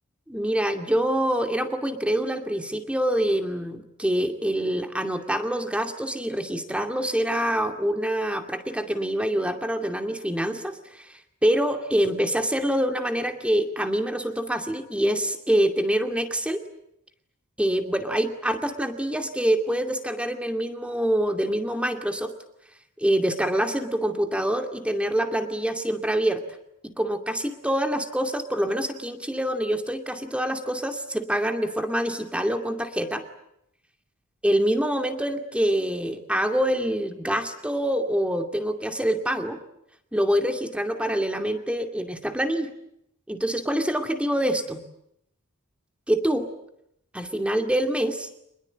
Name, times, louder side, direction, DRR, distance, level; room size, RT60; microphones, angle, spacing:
voice 1, 0.3-16.6 17.6-22.3 23.0-26.4 26.8-33.2 34.4-39.6 40.1-42.7 43.3-44.8 46.1-46.5 47.1-48.3, right 1 dB, 5° right, 6 dB, 2.4 m, -25 dB
26.0 x 21.0 x 9.3 m, 0.77 s
head